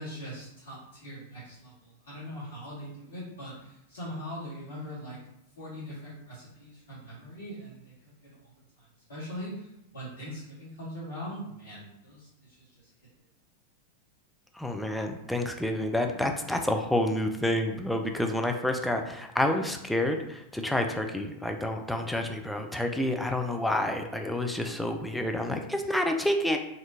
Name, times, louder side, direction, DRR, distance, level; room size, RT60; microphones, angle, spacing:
voice 1, 0.0-5.2 5.6-7.9 8.2-12.9, equal, 70° left, -9 dB, 1.3 m, -41 dB
voice 2, 14.5-26.6, left 1 dB, ahead, 3 dB, 0.4 m, -29 dB
4.3 x 2.4 x 2.7 m, 0.82 s
figure-of-eight pair, 90°, 0 cm